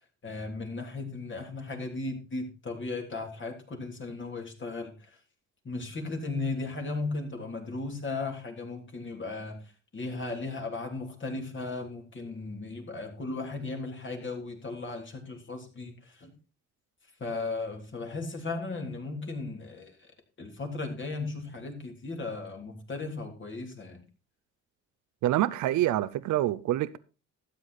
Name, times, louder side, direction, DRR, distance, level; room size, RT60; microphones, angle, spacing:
voice 1, 0.2-5.2 5.6-9.6 9.9-16.3 17.2-19.9 20.4-24.0, left 3 dB, 40° left, 3.2 m, -36 dB
voice 2, 25.2-27.0, right 14 dB, 75° right, 0.6 m, -26 dB
12.5 x 8.4 x 4.2 m
cardioid pair, 90°, 30 cm